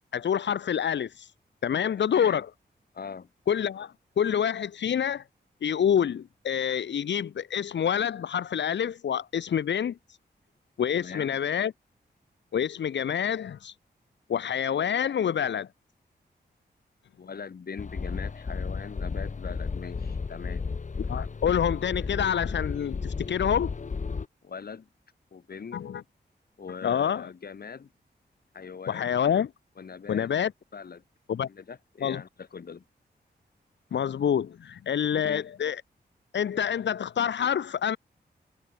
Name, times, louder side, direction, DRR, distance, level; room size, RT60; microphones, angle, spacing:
voice 1, 0.1-1.3 1.6-2.5 3.5-5.2 5.6-9.9 10.8-11.7 12.5-13.7 14.3-15.7 21.1-23.7 25.7-26.0 26.8-27.3 28.9-29.5 30.1-30.5 31.3-31.5 32.0-32.2 33.9-35.8 36.3-38.0, left 8 dB, 90° left, 1.0 m, -27 dB
voice 2, 2.1-2.4 2.9-3.3 10.9-11.4 17.2-20.6 24.4-24.9 25.3-25.8 26.6-27.9 28.5-29.1 29.8-30.3 30.7-31.0 31.5-32.8 35.1-35.5, left 6 dB, 60° left, 6.7 m, -41 dB
sound 1, 17.8-24.3, left 4 dB, 45° left, 5.2 m, -33 dB
wide cardioid pair, 155°, 18 cm